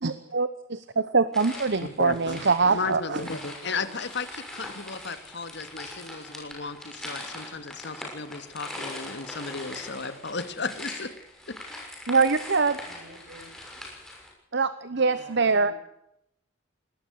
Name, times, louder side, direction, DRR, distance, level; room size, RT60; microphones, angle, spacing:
voice 1, 0.0-3.2 12.1-12.8 14.5-15.7, right 4 dB, 60° right, 13 dB, 1.0 m, -24 dB
sound 1, 1.3-14.3, left 1 dB, 5° left, 6.3 m, -41 dB
voice 2, 1.8-2.4 2.7-11.1, left 4 dB, 60° left, 10 dB, 2.1 m, -34 dB
voice 3, 3.6-3.9 12.9-13.5 14.9-15.7, right 1 dB, 85° right, 5 dB, 6.7 m, -49 dB
21.5 x 19.0 x 6.6 m, 0.78 s
head